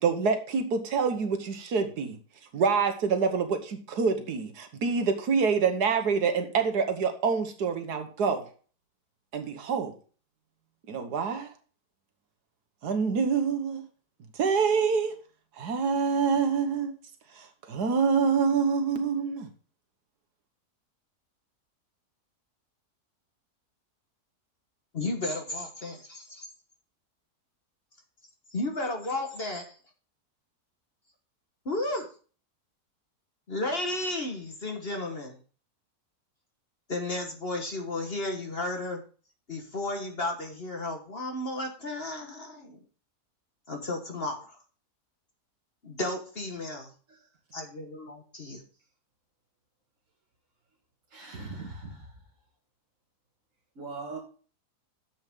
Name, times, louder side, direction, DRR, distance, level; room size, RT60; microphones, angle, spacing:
voice 1, 0.0-2.2 2.5-8.5 9.3-9.9 10.9-11.5 12.8-13.8 14.4-15.1 15.6-16.9 17.4-19.5, right 5 dB, 80° right, 1.7 m, -26 dB
voice 2, 24.9-26.5 28.5-29.6 31.6-32.1 33.5-35.4 36.9-39.0 39.5-42.8 43.7-44.6 45.8-46.9 47.5-48.6, left 2 dB, 40° left, 1.4 m, -33 dB
voice 3, 51.1-52.1 53.8-54.2, right 3 dB, 55° right, 2.0 m, -40 dB
9.5 x 7.4 x 3.6 m
omnidirectional pair, 1.7 m